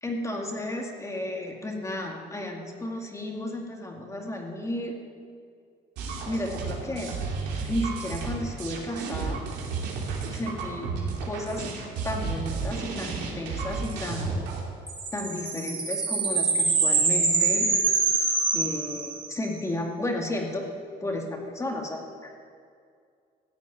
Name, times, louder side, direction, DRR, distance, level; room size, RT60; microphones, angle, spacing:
voice 1, 0.0-4.9 6.2-7.2 7.6-9.4 10.3-10.9 11.2-11.7 12.0-14.4 15.1-17.7 18.5-20.6 21.0-22.4, left 1 dB, 20° left, 1 dB, 2.1 m, -33 dB
sound 1, 6.0-14.6, right 4 dB, 85° right, 2.8 m, -32 dB
sound 2, 14.9-19.5, right 4 dB, 30° right, 2.8 m, -25 dB
15.0 x 7.2 x 9.3 m, 2.3 s
cardioid pair, 110°, 17 cm